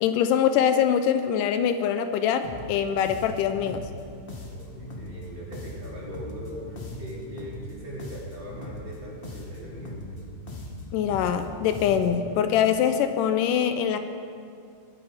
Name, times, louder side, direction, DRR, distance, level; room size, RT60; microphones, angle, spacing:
voice 1, 0.0-3.9 10.9-14.0, left 8 dB, 80° left, 9 dB, 2.2 m, -23 dB
sound 1, 2.4-12.3, left 1 dB, 60° left, 0.5 m, -39 dB
voice 2, 4.5-10.2, equal, 35° right, -5 dB, 3.3 m, -41 dB
22.0 x 8.9 x 5.1 m, 2.4 s
omnidirectional pair, 3.8 m